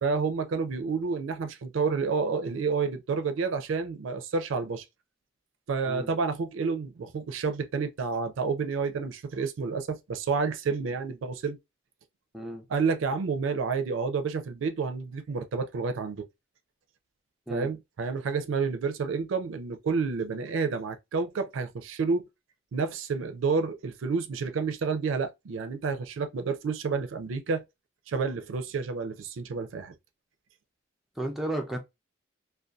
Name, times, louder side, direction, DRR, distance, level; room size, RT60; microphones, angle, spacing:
voice 1, 0.0-4.8 5.7-11.6 12.7-16.3 17.5-22.3 22.7-27.6 28.1-29.9, right 5 dB, 90° right, 0.4 m, -29 dB
voice 2, 12.3-12.6 17.5-17.7 31.2-31.8, right 1 dB, ahead, 0.4 m, -33 dB
2.5 x 2.2 x 2.2 m
head